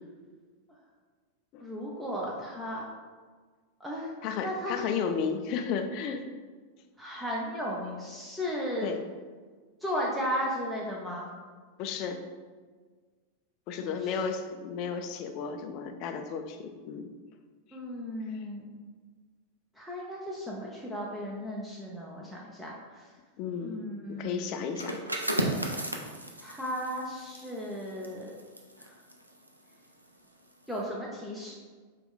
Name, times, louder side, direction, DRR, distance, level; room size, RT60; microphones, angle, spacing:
voice 1, 1.6-2.8 3.8-4.1 4.4-4.8 7.0-8.9 9.8-11.3 13.8-14.2 17.7-18.7 19.8-23.1 23.6-24.6 26.4-28.3 28.8-28.9 30.7-31.6, equal, 5° right, -5 dB, 0.6 m, -35 dB
voice 2, 4.2-6.2 8.8-9.0 11.8-12.2 13.7-17.1 18.3-18.4 23.4-23.8 24.1-25.0, left 6 dB, 40° left, 6 dB, 0.4 m, -33 dB
sound 1, 24.7-30.2 30.5-30.8, right 1 dB, 85° right, 0.5 m, -35 dB
4.8 x 2.4 x 3.7 m, 1.5 s
figure-of-eight pair, 90°, 0 cm